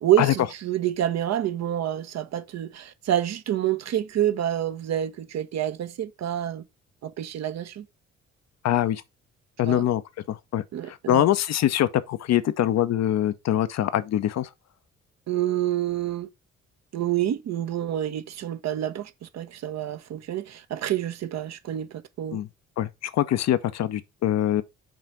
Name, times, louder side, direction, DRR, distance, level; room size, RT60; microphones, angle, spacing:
voice 1, 0.0-6.6 7.0-7.8 9.7-9.8 10.7-11.3 15.3-16.3 16.9-22.4, right 11 dB, 45° right, 0.9 m, -27 dB
voice 2, 8.6-9.0 9.6-10.0 10.3-14.5 22.3-22.5 22.8-24.6, left 12 dB, 45° left, 0.7 m, -24 dB
6.1 x 4.1 x 4.8 m
figure-of-eight pair, 40°, 37 cm